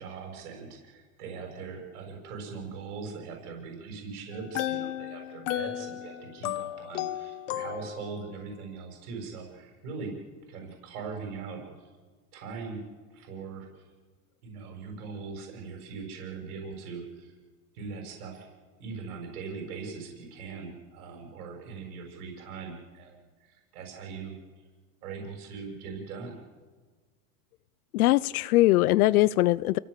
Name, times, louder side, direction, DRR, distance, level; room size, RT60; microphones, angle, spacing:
voice 1, 0.0-10.1 10.5-11.9 12.3-12.8 13.1-13.8 14.4-17.3 17.7-18.5 18.8-24.6 25.0-26.3, right 5 dB, 70° right, 2 dB, 6.9 m, -41 dB
sound 1, 4.3-8.3, left 13 dB, 55° left, 1.3 m, -34 dB
voice 2, 27.9-29.8, left 17 dB, 70° left, 20 dB, 0.6 m, -21 dB
28.5 x 16.5 x 8.4 m, 1.4 s
supercardioid pair, 165°, 46 cm